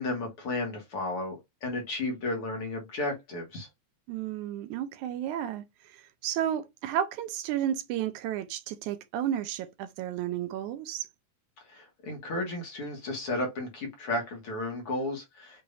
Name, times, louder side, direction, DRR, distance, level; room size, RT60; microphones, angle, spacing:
voice 1, 0.0-3.7 11.7-15.6, left 2 dB, 50° left, 2.2 m, -33 dB
voice 2, 4.1-11.1, right 10 dB, 80° right, 2.0 m, -32 dB
6.9 x 2.9 x 2.6 m
omnidirectional pair, 3.6 m